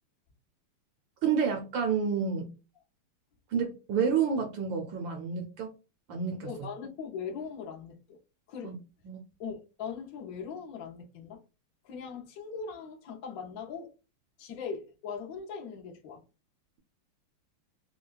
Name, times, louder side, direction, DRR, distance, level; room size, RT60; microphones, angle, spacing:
voice 1, 1.2-2.5 3.5-5.7 6.1-6.5 8.6-8.8 9.0-9.2, right 6 dB, 75° right, 1.2 m, -29 dB
voice 2, 6.4-8.2 8.5-8.7 9.4-11.4 11.8-13.9 14.4-16.2, left 6 dB, 65° left, 0.8 m, -40 dB
4.5 x 2.1 x 2.3 m
omnidirectional pair, 2.4 m